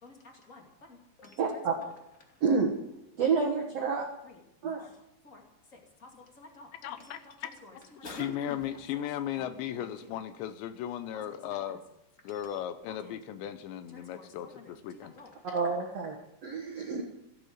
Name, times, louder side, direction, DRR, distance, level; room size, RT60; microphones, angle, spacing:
voice 1, 0.0-2.4 3.8-3.9 4.2-4.4 4.7-4.9 5.2-5.4 5.7-8.6 8.9-9.0 9.3-10.2 11.1-11.8 12.3-12.6 12.8-13.2 13.9-15.3, left 2 dB, 30° left, 1 dB, 1.6 m, -50 dB
voice 2, 1.4-1.7 2.4-2.7 3.2-4.0 4.6-4.8 15.5-17.0, right 5 dB, 85° right, 2 dB, 1.4 m, -28 dB
voice 3, 6.8-7.5 8.2-11.8 12.2-15.1, left 11 dB, 80° left, 11 dB, 2.9 m, -36 dB
16.5 x 9.2 x 7.9 m, 0.88 s
omnidirectional pair, 5.4 m